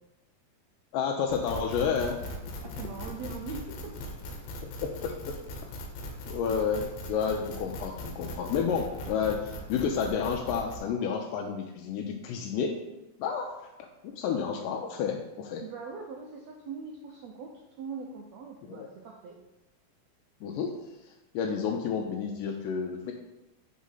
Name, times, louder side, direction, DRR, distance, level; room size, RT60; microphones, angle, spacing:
voice 1, 0.9-2.2 4.6-5.4 6.3-12.8 13.2-13.6 14.0-15.6 18.7-18.9 20.4-20.7 21.3-23.1, left 6 dB, 85° left, 2 dB, 2.2 m, -30 dB
sound 1, 1.3-10.8, left 1 dB, 65° left, 1.8 m, -40 dB
voice 2, 2.6-3.9 15.6-17.5 17.8-19.4, right 5 dB, 85° right, 0 dB, 1.5 m, -41 dB
6.2 x 3.7 x 5.5 m, 0.96 s
omnidirectional pair, 3.7 m